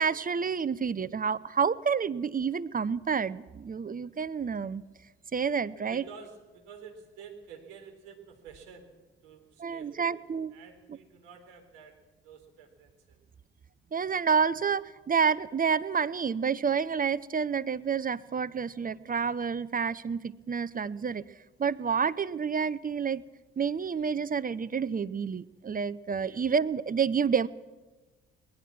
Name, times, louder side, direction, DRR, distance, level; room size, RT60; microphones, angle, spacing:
voice 1, 0.0-4.8 5.3-6.0 9.6-10.5 13.9-21.2 21.6-23.2 23.6-27.5, right 6 dB, 30° right, 15 dB, 0.8 m, -29 dB
voice 2, 5.9-8.9 9.2-10.1 10.5-11.9 12.2-13.2 26.2-26.4, right 6 dB, 70° right, 3 dB, 4.1 m, -50 dB
23.5 x 20.0 x 6.1 m, 1.2 s
figure-of-eight pair, 45°, 30 cm